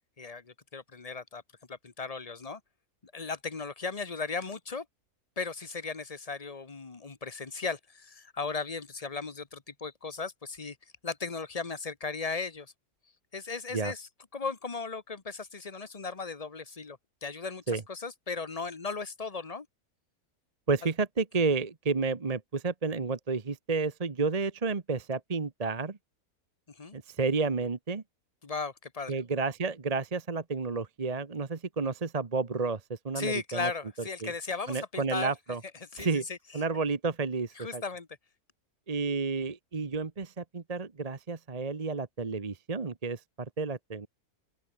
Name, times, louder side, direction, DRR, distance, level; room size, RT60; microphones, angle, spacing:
voice 1, 0.2-1.4 1.7-2.6 3.1-4.8 5.4-10.8 11.0-12.7 13.3-14.1 14.3-19.7 26.8-27.0 28.4-29.2 33.2-35.3 35.9-36.4 37.6-38.1, left 4 dB, 25° left, 1.2 m, -36 dB
voice 2, 20.7-26.0 26.9-28.0 29.1-33.7 34.2-34.3 34.7-35.6 36.0-36.2 36.5-37.8 38.9-43.2 43.6-44.1, right 4 dB, 30° right, 1.0 m, -31 dB
open air
omnidirectional pair, 1.6 m